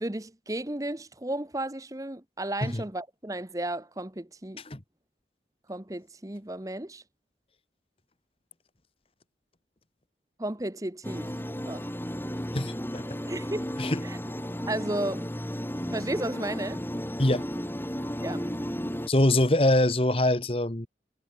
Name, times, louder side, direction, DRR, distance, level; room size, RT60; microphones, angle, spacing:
voice 1, 0.0-4.6 5.7-7.0 10.4-11.3 11.6-11.9 13.2-13.7 14.0-14.2 14.7-15.2 15.9-16.8 18.2-18.6, right 1 dB, 20° right, 1.1 m, -33 dB
sound 1, 11.0-19.1, equal, 10° left, 4.9 m, -34 dB
voice 2, 12.5-13.0 13.8-14.0 17.2-17.5 19.1-20.9, left 1 dB, 30° left, 1.4 m, -24 dB
head